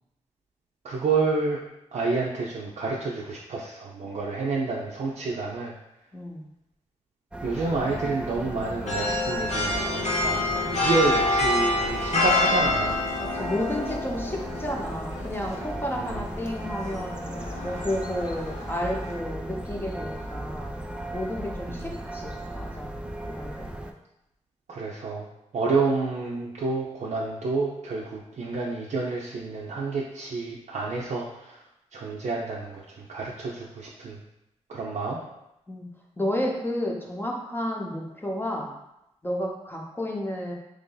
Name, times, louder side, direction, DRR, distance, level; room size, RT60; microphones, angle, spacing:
voice 1, 0.8-1.6 1.9-5.7 7.4-13.0 16.0-16.1 21.7-21.9 24.7-25.3 25.5-31.6 31.9-34.2 34.7-35.2, right 3 dB, 70° right, -4 dB, 0.5 m, -29 dB
voice 2, 6.1-6.4 13.3-17.2 17.6-20.7 21.1-22.9 23.2-23.8 35.7-35.9 36.2-38.7 39.2-40.5, left 1 dB, 15° left, -1 dB, 0.8 m, -31 dB
sound 1, 7.3-23.9, right 1 dB, 10° right, 0.4 m, -36 dB
sound 2, 8.9-19.2, left 2 dB, 70° left, 0.9 m, -28 dB
3.0 x 2.6 x 3.8 m, 0.87 s
cardioid pair, 55°, 12 cm